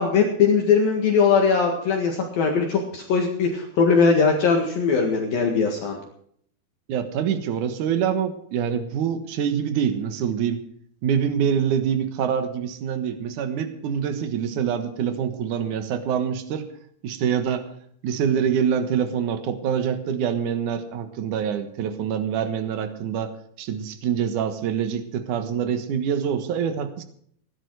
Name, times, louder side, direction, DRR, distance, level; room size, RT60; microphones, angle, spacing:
voice 1, 0.0-6.0, left 5 dB, 55° left, 1 dB, 3.1 m, -20 dB
voice 2, 6.9-10.6 11.0-16.7 17.0-17.7 18.0-23.3 23.6-27.0, right 8 dB, 65° right, 9 dB, 2.0 m, -25 dB
18.5 x 11.5 x 4.8 m, 0.65 s
omnidirectional pair, 5.6 m